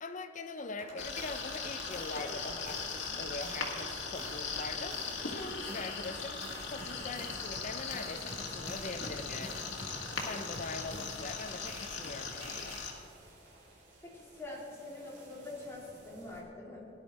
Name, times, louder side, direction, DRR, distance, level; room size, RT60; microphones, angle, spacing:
voice 1, 0.0-9.7 10.2-12.8, left 3 dB, 40° left, 7 dB, 0.6 m, -42 dB
sound 1, 0.8-3.1 3.4-12.1 12.4-12.8, right 1 dB, 40° right, 3.3 m, -48 dB
sound 2, 1.0-12.9, left 5 dB, 80° left, 1.8 m, -39 dB
sound 3, 6.8-16.4, right 1 dB, 65° right, 3.3 m, -58 dB
voice 2, 14.0-16.9, left 2 dB, 15° left, -5 dB, 2.7 m, -45 dB
18.0 x 10.5 x 4.2 m, 2.8 s
head